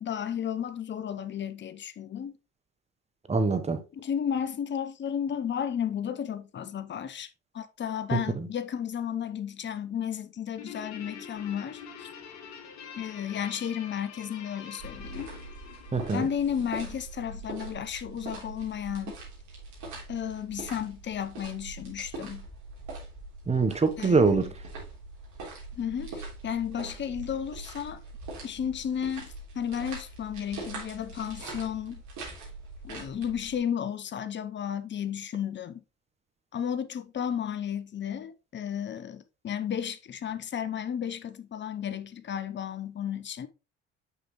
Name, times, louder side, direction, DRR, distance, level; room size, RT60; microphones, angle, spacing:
voice 1, 0.0-2.3 3.9-7.3 7.5-12.1 12.9-15.3 16.1-19.1 20.1-22.5 24.0-24.4 25.8-28.0 28.4-32.0 32.8-35.8 36.5-43.5, left 8 dB, 30° left, 0.8 m, -33 dB
voice 2, 3.3-3.8 8.1-8.5 15.9-16.2 23.5-24.5, right 4 dB, 20° right, 1.0 m, -24 dB
Guitar, 10.6-17.3, left 7 dB, 50° left, 1.7 m, -46 dB
sound 1, 14.8-33.6, right 3 dB, 55° right, 3.4 m, -43 dB
6.2 x 5.8 x 3.1 m
hypercardioid pair, 60°, 35 cm